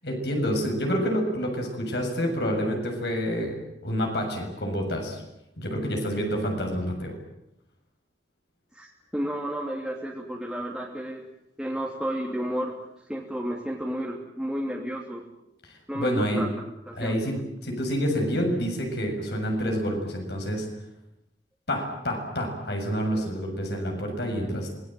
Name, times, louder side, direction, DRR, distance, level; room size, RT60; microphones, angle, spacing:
voice 1, 0.0-3.6 3.8-5.2 5.6-7.1 15.7-16.5 16.9-20.7 21.7-24.7, equal, 70° left, 2 dB, 7.3 m, -28 dB
voice 2, 8.7-11.2 11.6-12.7 13.1-15.2 15.9-16.5 16.9-17.1, equal, 5° right, -3 dB, 3.0 m, -32 dB
27.0 x 20.0 x 9.2 m, 0.84 s
head